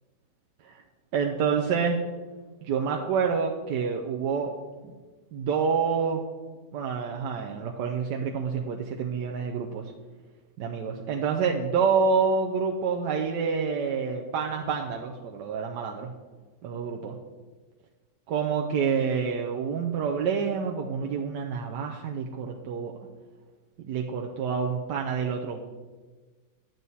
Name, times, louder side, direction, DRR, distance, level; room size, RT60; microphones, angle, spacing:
voice 1, 1.1-2.0 2.6-4.5 4.8-4.9 5.3-6.2 6.7-9.8 10.6-16.1 16.6-17.2 18.3-22.9 23.8-25.6, right 6 dB, 90° right, 1 dB, 1.3 m, -28 dB
10.5 x 7.8 x 4.1 m, 1.3 s
omnidirectional pair, 1.8 m